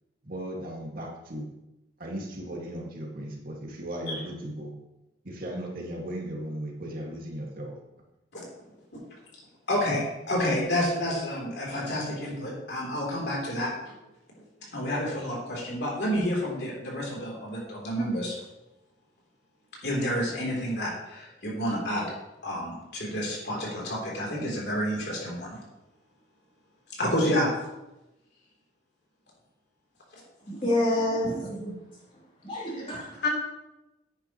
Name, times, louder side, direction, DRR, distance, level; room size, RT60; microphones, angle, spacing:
voice 1, 0.2-1.5 2.0-4.7 5.2-7.7, right 1 dB, 55° right, -2 dB, 2.1 m, -36 dB
voice 2, 9.7-13.9 14.7-18.4 19.8-22.0 22.4-25.6 26.9-27.5 33.2-33.3, equal, 65° left, -3 dB, 3.5 m, -29 dB
voice 3, 30.5-31.8 32.4-33.2, left 1 dB, 30° left, -6 dB, 3.4 m, -28 dB
10.0 x 9.7 x 3.1 m, 0.97 s
head